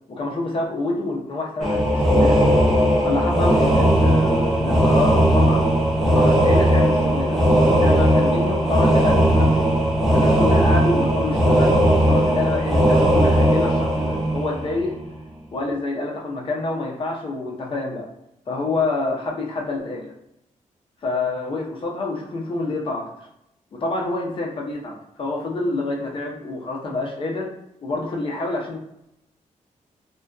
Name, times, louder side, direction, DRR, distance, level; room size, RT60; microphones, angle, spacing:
voice 1, 0.1-2.5 3.0-5.7 6.0-9.6 10.1-14.9 15.5-18.1 18.5-20.1 21.0-23.1 23.7-27.5 27.8-28.8, left 2 dB, 40° left, -1 dB, 0.6 m, -27 dB
sound 1, 1.6-15.1, right 1 dB, ahead, 0.7 m, -18 dB
2.5 x 2.2 x 2.3 m, 0.82 s
wide cardioid pair, 135°, 13 cm